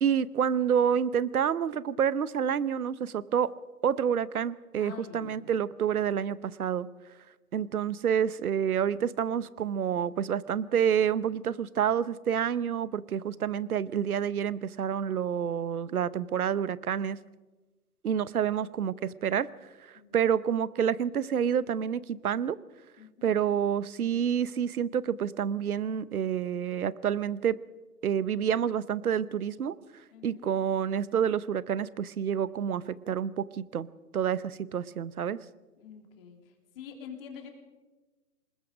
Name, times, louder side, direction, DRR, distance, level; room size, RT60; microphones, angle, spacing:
voice 1, 0.0-3.5 3.8-6.9 7.5-17.2 18.0-22.6 23.2-27.6 28.0-29.7 30.2-33.9 34.1-35.4, right 8 dB, 65° right, 18 dB, 0.9 m, -28 dB
voice 2, 4.7-5.5 20.0-20.2 23.0-23.3 30.1-30.5 35.8-36.4 36.8-37.5, left 7 dB, 35° left, 3 dB, 3.6 m, -46 dB
26.5 x 20.5 x 5.1 m, 1.2 s
figure-of-eight pair, 140°, 48 cm